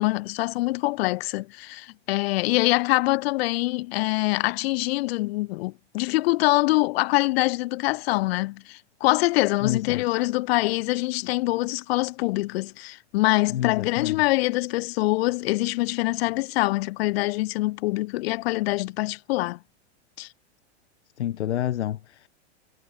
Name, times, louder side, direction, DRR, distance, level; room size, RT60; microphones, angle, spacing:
voice 1, 0.0-19.6 20.2-20.3, left 20 dB, 65° left, 4.1 m, -24 dB
voice 2, 9.6-10.0 13.5-14.2 21.2-22.3, left 12 dB, 80° left, 3.2 m, -29 dB
hypercardioid pair, 115°, 33 cm